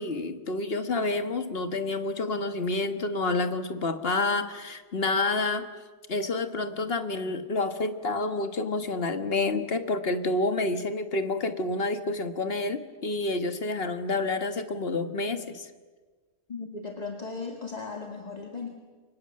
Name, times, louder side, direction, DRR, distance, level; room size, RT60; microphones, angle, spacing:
voice 1, 0.0-5.7 6.1-15.7, left 2 dB, 50° left, 9 dB, 1.7 m, -29 dB
voice 2, 16.5-18.7, left 4 dB, 30° left, 3 dB, 2.1 m, -37 dB
29.5 x 25.0 x 7.6 m, 1.4 s
omnidirectional pair, 1.3 m